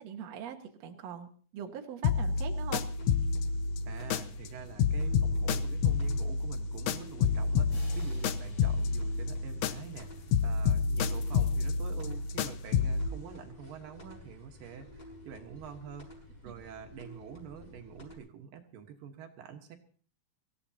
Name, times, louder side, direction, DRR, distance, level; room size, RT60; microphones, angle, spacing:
voice 1, 0.0-2.8, right 8 dB, 55° right, 3 dB, 2.3 m, -42 dB
sound 1, 2.0-4.5 4.8-10.0 10.3-13.1, left 5 dB, 85° left, 1.5 m, -29 dB
sound 2, 2.2-18.2, left 1 dB, 30° left, 7.2 m, -50 dB
voice 2, 3.9-19.8, right 8 dB, 75° right, 4 dB, 3.0 m, -47 dB
sound 3, 7.7-10.5, left 1 dB, 45° left, 4.8 m, -57 dB
25.0 x 15.5 x 2.8 m, 0.43 s
omnidirectional pair, 4.1 m